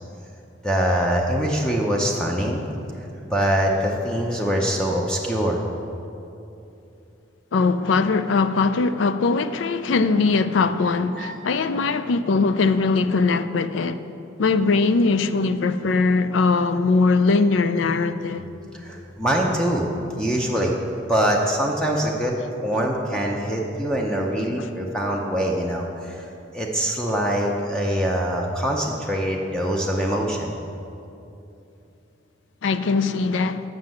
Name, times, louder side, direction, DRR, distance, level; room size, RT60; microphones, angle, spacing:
voice 1, 0.6-2.7 3.3-5.6 11.1-11.3 18.7-19.9 20.2-20.8 21.1-22.4 22.6-26.3 26.5-30.5, equal, 5° left, 0.6 m, -23 dB
voice 2, 7.5-14.0 14.4-18.4 24.6-24.7 32.6-33.6, left 4 dB, 75° left, 0.4 m, -21 dB
7.5 x 6.0 x 7.6 m
head